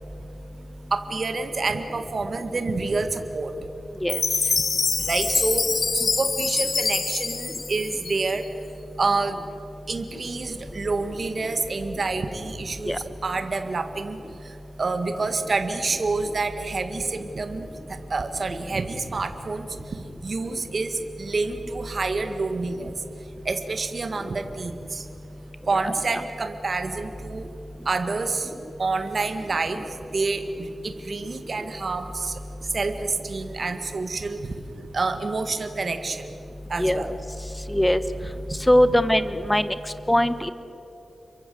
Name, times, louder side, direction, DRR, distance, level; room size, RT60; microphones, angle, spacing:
voice 1, 0.9-3.5 5.0-8.5 9.0-9.4 9.9-14.2 14.8-17.7 18.1-20.0 20.2-22.9 23.5-25.1 25.7-27.5 27.9-28.5 28.8-29.9 30.1-32.4 32.7-34.5 34.9-36.3 36.7-37.1, right 3 dB, 50° right, 7 dB, 1.8 m, -28 dB
Chime, 4.1-8.5, left 4 dB, 55° left, 1.1 m, -25 dB
voice 2, 38.7-39.7 40.1-40.5, equal, 10° left, 12 dB, 1.2 m, -20 dB
28.0 x 23.5 x 7.8 m, 3.0 s
wide cardioid pair, 115°, 0 cm